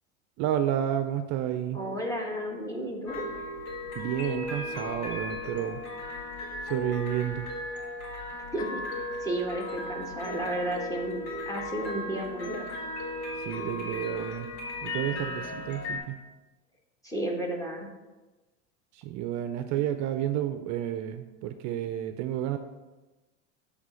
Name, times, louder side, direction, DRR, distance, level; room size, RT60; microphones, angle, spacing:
voice 1, 0.4-1.8 4.0-5.8 6.6-7.5 13.4-14.5 14.8-16.2 18.9-22.6, right 11 dB, 50° right, 9 dB, 0.5 m, -31 dB
voice 2, 1.7-3.2 8.5-11.2 11.5-12.7 17.0-17.9, right 1 dB, 10° left, 0 dB, 1.4 m, -33 dB
sound 1, 3.1-16.0, left 1 dB, 85° left, 1.9 m, -36 dB
7.3 x 3.4 x 6.3 m, 1.2 s
supercardioid pair, 105°, 37 cm